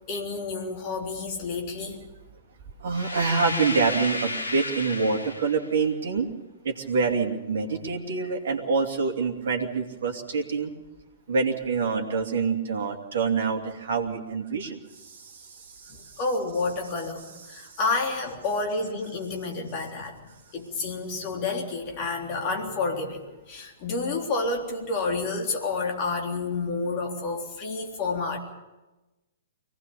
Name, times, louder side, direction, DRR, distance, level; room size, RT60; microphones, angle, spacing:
voice 1, 0.1-2.0 15.9-20.2 20.5-28.4, left 3 dB, 35° left, 1 dB, 3.6 m, -29 dB
voice 2, 2.8-6.3 6.6-10.7 11.3-16.1 17.5-17.8, right 4 dB, 55° right, 3 dB, 2.8 m, -26 dB
sound 1, 2.9-5.7, left 2 dB, 75° left, 2.2 m, -32 dB
23.5 x 18.5 x 7.0 m, 1.1 s
figure-of-eight pair, 110°, 0 cm